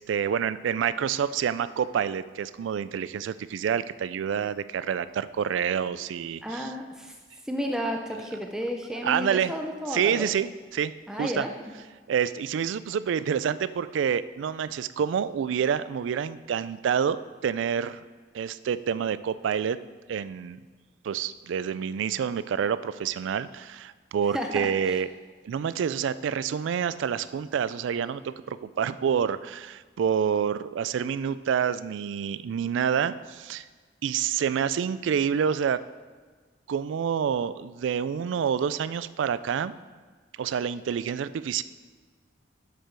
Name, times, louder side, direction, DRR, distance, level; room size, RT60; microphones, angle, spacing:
voice 1, 0.1-6.7 9.0-9.5 9.9-11.5 12.1-18.0 18.3-19.8 20.1-20.6 21.0-25.1 25.4-33.7 34.0-35.8 36.7-39.7 40.4-41.6, right 7 dB, 80° right, 16 dB, 0.3 m, -28 dB
voice 2, 6.4-7.2 7.5-10.3 11.1-11.7 24.3-25.0, equal, 5° right, 2 dB, 0.5 m, -32 dB
7.6 x 6.7 x 4.6 m, 1.4 s
head